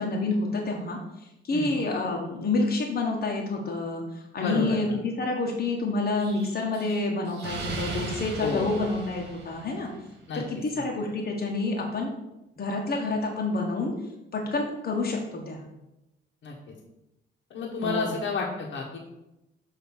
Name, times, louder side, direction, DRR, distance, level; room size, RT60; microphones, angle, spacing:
voice 1, 0.0-9.9 10.3-12.1 12.6-13.9 14.3-15.7 17.8-18.1, left 2 dB, 50° left, 0 dB, 1.3 m, -28 dB
voice 2, 4.4-5.0 8.4-8.8 10.3-10.4 10.7-10.8 16.4-16.7 17.5-19.0, left 4 dB, 70° left, -5 dB, 1.5 m, -31 dB
Explosion, 6.2-10.1, right 3 dB, 60° right, 1.8 m, -37 dB
7.3 x 3.1 x 6.1 m, 0.92 s
cardioid pair, 90°, 20 cm